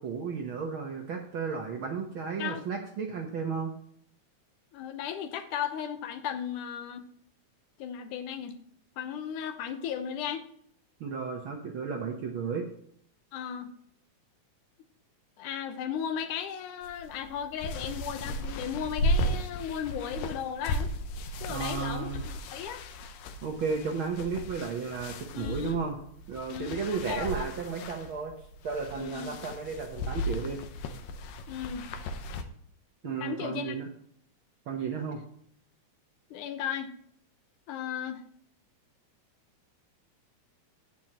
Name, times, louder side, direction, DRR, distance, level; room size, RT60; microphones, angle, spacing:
voice 1, 0.0-3.7 11.0-12.6 21.5-22.3 23.4-26.0 26.3-28.3 28.6-30.6 33.0-33.9 34.7-35.2, right 5 dB, 65° right, 2 dB, 1.3 m, -33 dB
voice 2, 4.7-7.1 7.8-8.5 9.0-10.5 13.3-13.7 15.4-20.9 21.4-22.2 22.5-22.8 25.3-25.8 26.5-27.5 29.0-29.3 31.5-31.9 33.0-33.7 36.3-36.9 37.7-38.2, left 8 dB, 85° left, 8 dB, 2.5 m, -35 dB
sound 1, 16.8-32.4, equal, 70° left, 2.0 m, -35 dB
16.0 x 6.1 x 3.0 m, 0.65 s
omnidirectional pair, 3.5 m